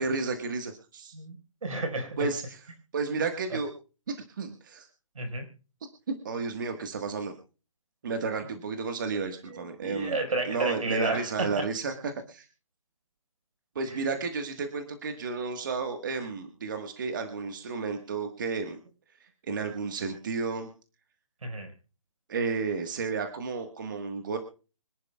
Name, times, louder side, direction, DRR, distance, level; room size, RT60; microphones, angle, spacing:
voice 1, 0.0-1.1 2.2-2.6 2.9-3.7 4.1-4.9 6.1-7.3 8.0-10.2 10.5-12.5 13.7-18.8 19.4-20.7 22.3-24.4, right 4 dB, 35° right, 5 dB, 1.4 m, -32 dB
voice 2, 1.6-2.3 5.1-5.4 9.4-11.7 13.9-14.0 21.4-21.7, right 2 dB, 75° right, 6 dB, 4.6 m, -32 dB
25.5 x 11.0 x 2.3 m, 0.34 s
hypercardioid pair, 170°, 18 cm